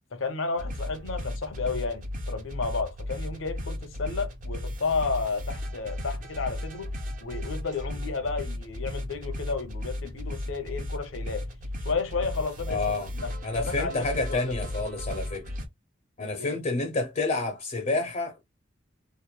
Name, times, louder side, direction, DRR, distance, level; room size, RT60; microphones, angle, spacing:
voice 1, 0.1-7.0 7.2-11.5 11.8-14.6 16.2-16.6, left 4 dB, 80° left, 0.7 m, -32 dB
sound 1, 0.6-15.7, left 1 dB, 40° right, 0.6 m, -35 dB
voice 2, 12.7-13.1 13.4-15.4 16.2-18.4, left 3 dB, 40° left, 0.5 m, -29 dB
3.0 x 2.1 x 2.2 m
head